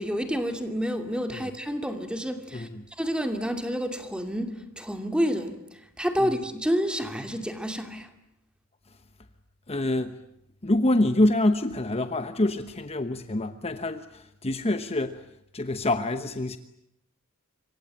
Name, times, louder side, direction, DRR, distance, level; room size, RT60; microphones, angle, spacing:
voice 1, 0.0-2.7 3.0-5.6 6.0-8.1, equal, 5° right, 2.6 m, -29 dB
voice 2, 2.5-2.9 6.2-6.4 9.7-10.2 10.6-15.2 15.5-16.6, left 1 dB, 30° left, 1.0 m, -26 dB
27.0 x 24.5 x 8.9 m
head